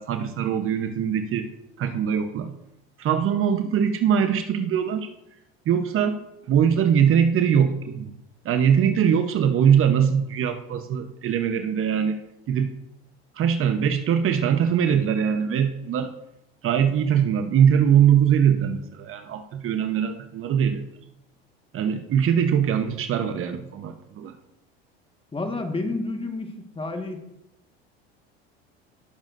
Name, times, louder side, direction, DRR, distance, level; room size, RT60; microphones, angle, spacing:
voice 1, 0.0-1.5 1.8-2.5 3.0-5.1 5.7-6.2 6.5-8.2 8.4-12.2 12.5-12.7 13.4-16.1 16.6-20.8 21.7-24.3, right 8 dB, 45° right, 8 dB, 1.0 m, -22 dB
voice 2, 25.3-27.2, left 2 dB, 15° left, 5 dB, 1.6 m, -30 dB
18.5 x 7.4 x 2.6 m, 0.86 s
hypercardioid pair, 85°, 31 cm